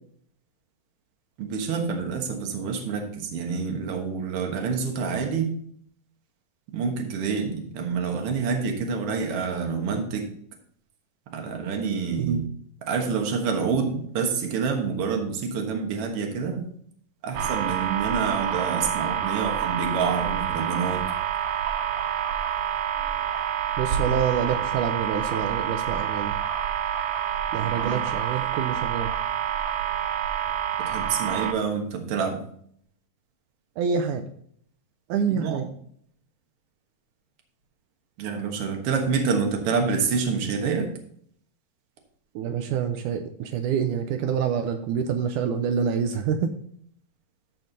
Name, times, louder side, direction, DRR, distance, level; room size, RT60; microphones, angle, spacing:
voice 1, 1.4-5.5 6.7-10.3 11.3-12.5 12.8-16.7 17.2-21.0 27.6-28.0 30.8-32.4 35.3-35.7 38.2-40.9, right 5 dB, 55° right, 3 dB, 1.6 m, -27 dB
sound 1, 17.3-31.5, right 9 dB, 75° right, 1.9 m, -27 dB
voice 2, 23.8-26.4 27.5-29.1 33.8-34.2 35.1-35.7 42.4-46.5, right 7 dB, 90° right, 6 dB, 1.7 m, -27 dB
13.5 x 4.5 x 3.9 m, 0.64 s
omnidirectional pair, 4.3 m